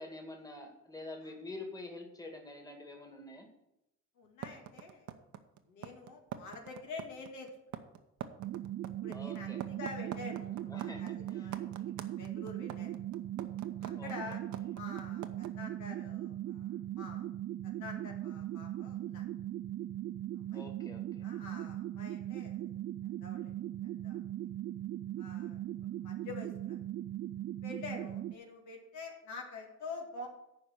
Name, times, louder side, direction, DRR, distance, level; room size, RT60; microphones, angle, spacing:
voice 1, 0.0-3.5 9.1-9.6 10.7-11.5 14.0-14.4 20.5-21.3, left 2 dB, 10° left, 2 dB, 2.0 m, -47 dB
voice 2, 4.2-5.1 5.7-7.5 9.0-11.7 12.0-13.0 13.8-14.4 14.7-17.3 17.6-19.3 20.5-20.6 21.2-22.6 23.2-23.5 23.8-24.2 25.2-26.8 27.6-30.3, left 4 dB, 75° left, 1 dB, 2.3 m, -47 dB
sound 1, 4.4-15.5, right 10 dB, 70° right, 0.9 m, -43 dB
sound 2, 8.4-28.3, right 13 dB, 55° right, 0.4 m, -39 dB
9.7 x 5.2 x 7.7 m, 0.86 s
cardioid pair, 90°, 30 cm